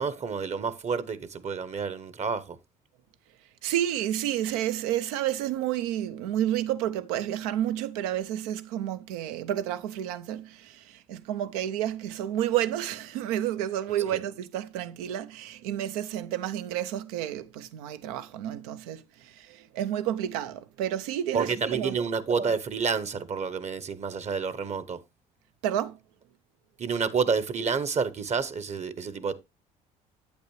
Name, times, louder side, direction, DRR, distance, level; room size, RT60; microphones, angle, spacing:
voice 1, 0.0-2.6 21.3-25.0 26.8-29.3, right 5 dB, 40° right, 0.9 m, -29 dB
voice 2, 3.6-22.0 25.6-26.0, right 11 dB, 85° right, 0.6 m, -30 dB
8.4 x 8.1 x 3.1 m
hypercardioid pair, 65°, 18 cm